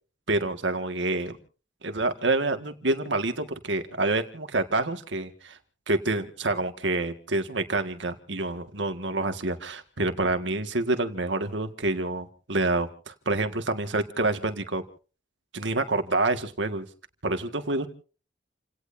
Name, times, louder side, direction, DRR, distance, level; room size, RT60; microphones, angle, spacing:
voice 1, 0.3-1.3 1.8-5.6 5.9-14.8 15.5-16.9 17.2-17.9, right 2 dB, 80° right, 7 dB, 1.9 m, -27 dB
29.5 x 17.5 x 2.7 m, 0.38 s
head